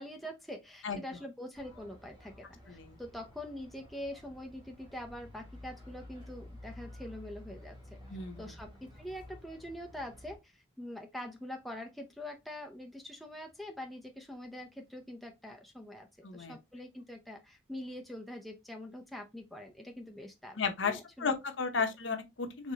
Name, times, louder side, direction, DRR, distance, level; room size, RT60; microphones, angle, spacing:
voice 1, 0.0-7.8 8.4-16.1 16.3-21.3, left 1 dB, ahead, 0.6 m, -44 dB
sound 1, 1.5-10.4, left 1 dB, 25° right, 1.9 m, -52 dB
voice 2, 8.1-8.5 16.2-16.6 20.6-22.7, left 5 dB, 75° left, 0.9 m, -34 dB
4.6 x 3.5 x 2.8 m
head